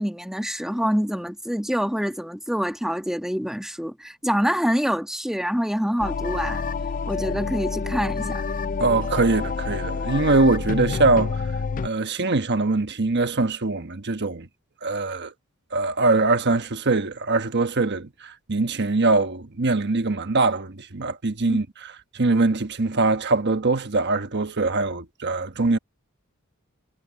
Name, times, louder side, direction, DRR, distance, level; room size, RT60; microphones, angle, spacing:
voice 1, 0.0-6.7 7.1-8.5 21.5-21.6, equal, ahead, 1.7 m, -26 dB
sound 1, 6.0-11.9, left 4 dB, 40° left, 0.4 m, -28 dB
voice 2, 8.8-11.4 11.8-14.5 14.8-15.3 15.7-21.7 22.1-25.8, right 3 dB, 55° right, 1.2 m, -22 dB
head